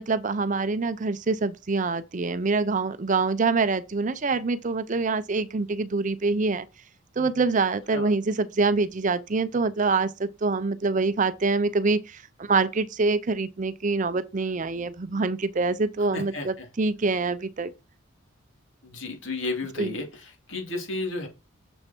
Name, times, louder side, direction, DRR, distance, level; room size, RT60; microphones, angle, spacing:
voice 1, 0.0-6.7 7.2-17.7 19.8-19.9, right 3 dB, 35° right, 0.5 m, -25 dB
voice 2, 16.1-16.7 18.8-21.3, left 2 dB, 60° left, 3.0 m, -33 dB
7.1 x 6.5 x 4.4 m
head